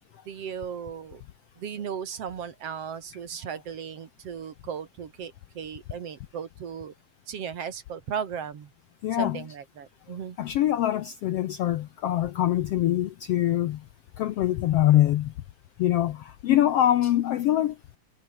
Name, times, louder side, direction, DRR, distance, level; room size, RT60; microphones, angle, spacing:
voice 1, 0.3-1.2 1.6-6.9 7.3-8.7 9.1-10.4, right 7 dB, 50° right, 2.5 m, -36 dB
voice 2, 9.0-9.4 10.4-13.8 14.2-15.3 15.8-17.7, left 12 dB, 80° left, 1.4 m, -24 dB
omnidirectional pair, 3.8 m